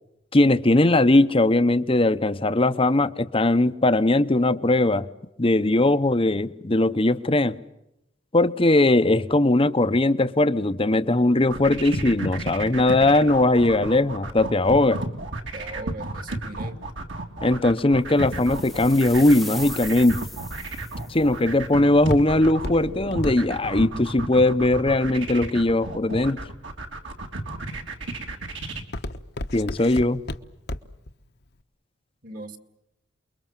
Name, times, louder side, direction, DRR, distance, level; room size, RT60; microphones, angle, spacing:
voice 1, 0.3-5.1 5.4-7.5 8.3-15.0 17.4-20.2 21.1-26.4 29.5-30.2, left 2 dB, 30° left, 0.9 m, -20 dB
sound 1, 11.4-28.8, right 2 dB, 65° right, 3.5 m, -33 dB
voice 2, 15.5-16.8 32.2-32.6, right 2 dB, 45° right, 2.3 m, -38 dB
sound 2, 18.3-21.3, left 1 dB, ahead, 0.9 m, -39 dB
Walk footsteps, 20.8-25.9 26.5-27.0 27.5-27.9 28.2-31.1 31.4-31.5, left 1 dB, 55° left, 1.2 m, -34 dB
29.0 x 22.5 x 7.5 m
head